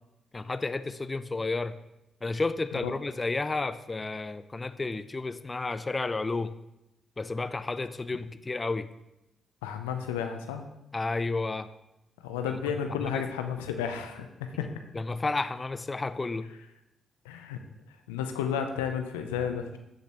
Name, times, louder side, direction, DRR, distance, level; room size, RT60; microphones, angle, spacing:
voice 1, 0.3-1.8 2.2-6.5 7.2-8.9 10.9-11.7 12.4-12.6 13.0-13.2 14.9-16.5, left 3 dB, 30° left, 12 dB, 0.5 m, -31 dB
voice 2, 9.6-10.6 12.2-14.7 17.2-17.6 18.1-19.8, left 7 dB, 90° left, 6 dB, 0.5 m, -32 dB
14.0 x 5.2 x 2.9 m, 0.90 s
hypercardioid pair, 40°, 0 cm